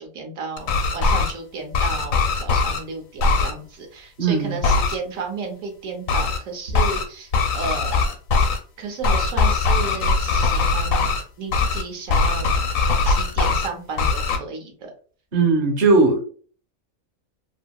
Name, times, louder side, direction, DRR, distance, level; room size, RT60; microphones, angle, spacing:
voice 1, 0.0-8.0 8.8-12.5 13.0-14.9, right 4 dB, 70° right, 2 dB, 1.1 m, -33 dB
sound 1, 0.6-1.3 1.7-2.8 3.2-3.5 4.6-5.0 6.1-6.4 6.7-7.0 7.3-8.6 9.0-11.2 11.5-11.8 12.1-13.7 14.0-14.4, left 4 dB, 75° left, 1.0 m, -20 dB
voice 2, 4.2-4.6 15.3-16.2, right 3 dB, 45° right, 1 dB, 0.9 m, -18 dB
2.8 x 2.7 x 2.2 m, 0.42 s
omnidirectional pair, 1.5 m